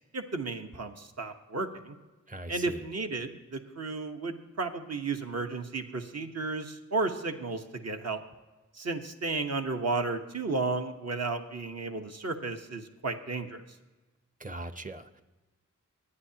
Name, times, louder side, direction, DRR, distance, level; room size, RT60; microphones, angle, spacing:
voice 1, 0.1-1.9 2.5-8.2 8.7-13.6, right 3 dB, 55° right, 5 dB, 1.2 m, -33 dB
voice 2, 2.3-2.8 14.4-15.2, right 2 dB, 25° right, 10 dB, 0.9 m, -40 dB
25.5 x 9.8 x 2.9 m, 1.2 s
cardioid pair, 55°, 30 cm